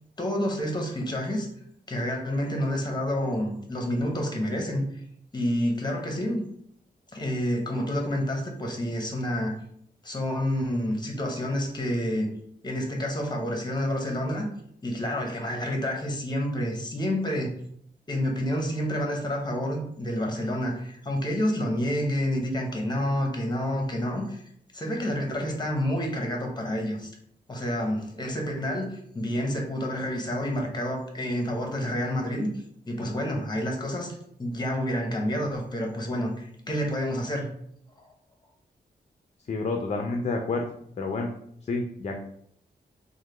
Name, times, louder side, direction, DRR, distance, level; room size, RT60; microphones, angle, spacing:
voice 1, 0.2-1.5 1.9-4.9 5.3-6.4 7.1-9.5 10.0-12.3 12.6-14.5 14.8-17.5 18.1-24.4 24.7-27.1 27.5-32.5 32.8-37.5, equal, 25° left, 2 dB, 0.8 m, -29 dB
voice 2, 39.5-40.7 41.0-41.3 41.7-42.2, left 3 dB, 40° left, 3 dB, 0.4 m, -29 dB
3.1 x 2.1 x 3.1 m, 0.69 s
cardioid pair, 65°, 18 cm